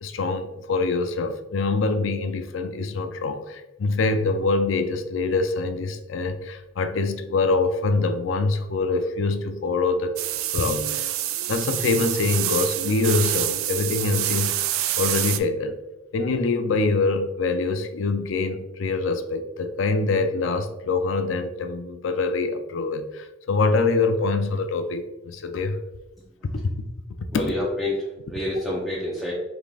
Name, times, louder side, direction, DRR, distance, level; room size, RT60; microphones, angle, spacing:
voice 1, 0.0-10.1 10.5-11.1 11.5-15.8 16.1-25.8 26.4-26.6 27.2-27.3, left 3 dB, 65° left, 8 dB, 0.4 m, -25 dB
sound 1, 10.2-15.4, right 12 dB, 85° right, 0.3 m, -27 dB
voice 2, 27.3-29.3, left 1 dB, ahead, -6 dB, 0.7 m, -28 dB
5.1 x 3.6 x 2.4 m, 1.0 s
head